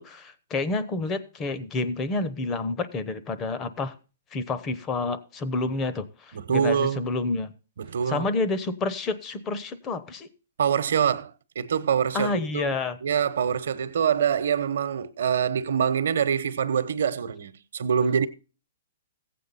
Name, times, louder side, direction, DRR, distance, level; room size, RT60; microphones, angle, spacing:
voice 1, 0.0-3.9 4.3-7.5 8.1-10.3 12.1-13.0, left 3 dB, 20° left, 0.9 m, -29 dB
voice 2, 6.3-7.1 7.8-8.3 10.6-18.3, right 7 dB, 70° right, 1.0 m, -25 dB
14.5 x 8.5 x 4.1 m
hypercardioid pair, 145°, 0 cm